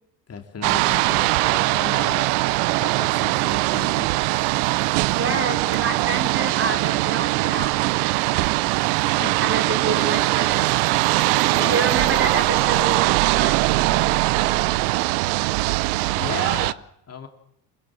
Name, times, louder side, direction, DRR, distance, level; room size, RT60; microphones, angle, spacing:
voice 1, 0.3-2.3 2.8-4.1 5.5-5.6 7.6-7.7 9.1-9.8 11.1-11.3 11.6-11.9 16.1-17.3, left 6 dB, 30° left, 5 dB, 2.8 m, -35 dB
sound 1, 0.6-16.7, right 21 dB, 70° right, 0.8 m, -21 dB
voice 2, 5.1-8.7 9.0-10.7 11.5-14.7, right 3 dB, 25° right, 6 dB, 4.1 m, -29 dB
26.5 x 16.0 x 7.6 m, 0.79 s
hypercardioid pair, 80°, 48 cm